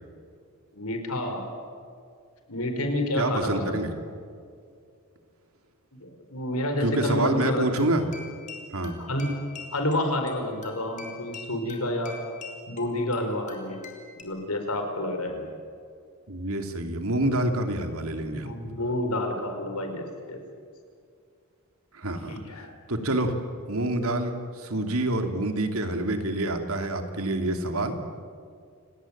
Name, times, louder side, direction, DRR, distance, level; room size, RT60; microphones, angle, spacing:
voice 1, 0.7-1.5 2.5-3.7 6.0-7.7 9.0-9.3 9.7-12.1 12.7-13.8 14.2-15.4 18.3-20.4 22.3-22.7, left 1 dB, 85° left, 5 dB, 5.1 m, -29 dB
voice 2, 3.1-3.9 6.8-8.0 8.7-9.0 15.3-15.5 16.3-18.5 21.9-22.4 22.9-23.3 23.7-27.9, right 1 dB, 75° right, 6 dB, 3.0 m, -27 dB
sound 1, 7.0-14.2, left 4 dB, 35° left, 3.8 m, -45 dB
29.5 x 19.0 x 9.0 m, 2.3 s
head